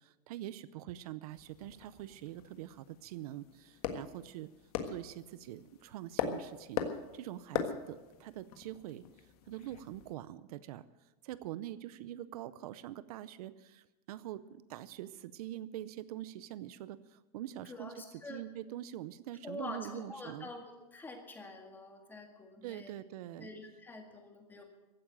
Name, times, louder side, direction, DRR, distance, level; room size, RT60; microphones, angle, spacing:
voice 1, 0.0-4.5 4.9-6.9 7.1-20.5 22.6-23.5, right 13 dB, 65° right, 16 dB, 0.7 m, -44 dB
sound 1, 1.3-10.1, left 8 dB, 65° left, 1.6 m, -41 dB
voice 2, 17.7-18.4 19.4-22.9 23.4-24.6, left 2 dB, 10° left, 3 dB, 1.8 m, -46 dB
15.5 x 8.7 x 9.1 m, 1.1 s
supercardioid pair, 170°, 21 cm